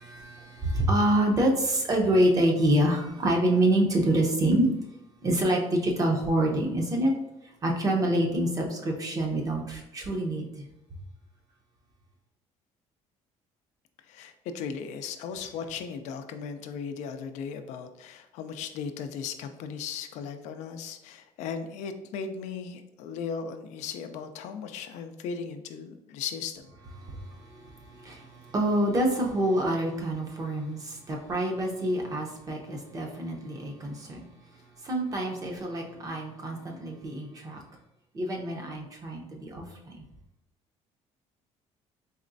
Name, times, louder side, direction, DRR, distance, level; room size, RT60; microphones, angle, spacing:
voice 1, 0.0-4.7 5.2-7.1 7.6-10.7 27.0-34.2 34.8-37.6 38.1-40.0, right 1 dB, 30° right, 1 dB, 0.7 m, -27 dB
voice 2, 14.1-26.7, left 6 dB, 80° left, 8 dB, 0.4 m, -37 dB
4.2 x 3.0 x 2.6 m, 0.90 s
cardioid pair, 135°, 12 cm